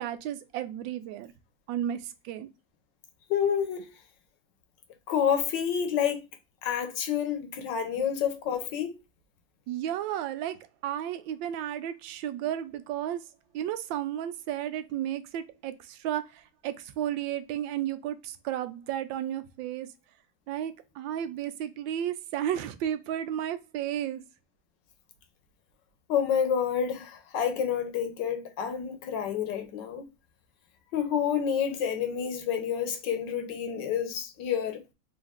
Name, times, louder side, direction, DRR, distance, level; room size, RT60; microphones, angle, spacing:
voice 1, 0.0-1.3 1.7-2.5 8.0-8.1 9.7-13.2 13.5-19.9 20.5-24.2, right 11 dB, 85° right, 1.3 m, -33 dB
voice 2, 3.3-3.9 5.1-6.2 6.6-9.0 26.1-30.1 30.9-34.8, left 8 dB, 75° left, 1.4 m, -29 dB
4.2 x 2.6 x 3.5 m
omnidirectional pair, 2.0 m